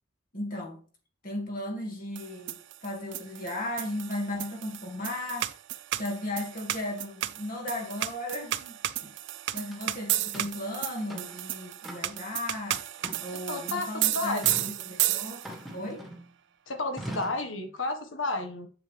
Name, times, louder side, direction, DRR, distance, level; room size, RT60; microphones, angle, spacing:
voice 1, 0.3-0.8 1.2-2.6 2.8-5.5 6.0-9.1 9.5-12.8 13.2-15.4 15.7-16.0, left 1 dB, 45° left, 2.2 m, -36 dB
sound 1, 2.2-15.7, right 14 dB, 65° right, 0.5 m, -33 dB
sound 2, 9.7-9.8 10.3-10.6 11.0-11.4 11.8-12.3 13.0-13.6 14.4-14.7 15.4-16.3 17.0-17.5, right 1 dB, ahead, 1.8 m, -41 dB
voice 2, 13.5-14.7 16.7-18.7, left 2 dB, 75° left, 1.6 m, -32 dB
7.6 x 7.5 x 3.5 m
head